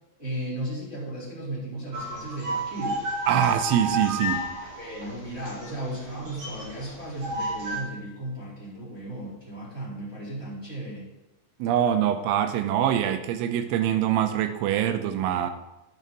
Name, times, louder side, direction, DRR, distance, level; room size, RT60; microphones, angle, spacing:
voice 1, 0.2-3.0 4.8-11.1, right 1 dB, 5° right, -8 dB, 3.3 m, -35 dB
sound 1, 1.9-7.8, right 1 dB, 35° right, 3.8 m, -32 dB
voice 2, 3.3-4.5 11.6-15.5, right 10 dB, 90° right, 9 dB, 3.1 m, -24 dB
10.5 x 7.6 x 4.1 m, 0.99 s
omnidirectional pair, 5.4 m